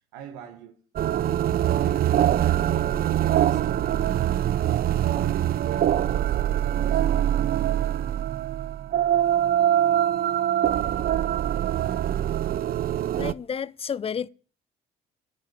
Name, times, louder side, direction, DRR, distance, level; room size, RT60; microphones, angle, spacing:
voice 1, 0.1-0.8 1.6-4.5 5.1-7.2 7.9-8.1, right 9 dB, 90° right, 1.3 m, -41 dB
sound 1, 1.0-13.3, right 11 dB, 50° right, 0.6 m, -23 dB
voice 2, 13.2-14.3, left 7 dB, 30° left, 0.5 m, -31 dB
11.0 x 6.1 x 8.2 m
supercardioid pair, 65°, 19 cm